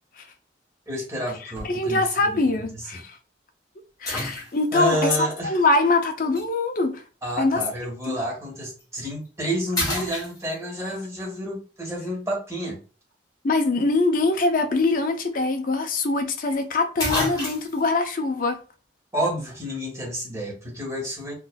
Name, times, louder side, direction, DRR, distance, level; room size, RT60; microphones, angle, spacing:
voice 1, 0.9-2.5 2.7-2.8 4.7-5.5 7.2-12.8 19.1-21.3, equal, 15° right, 1.2 m, -30 dB
voice 2, 1.4-3.2 4.0-7.0 7.4-7.6 8.1-8.2 10.0-10.1 13.4-18.6, left 3 dB, 45° left, 0.5 m, -23 dB
sound 1, 1.6-1.9 2.5-2.6 4.0-4.9 6.3-6.5 8.6-8.8 9.2-9.4 9.7-10.8 14.9-15.0 15.3-15.4 16.5-16.6 17.0-17.8, left 1 dB, 20° left, 1.8 m, -29 dB
4.5 x 2.6 x 2.2 m
head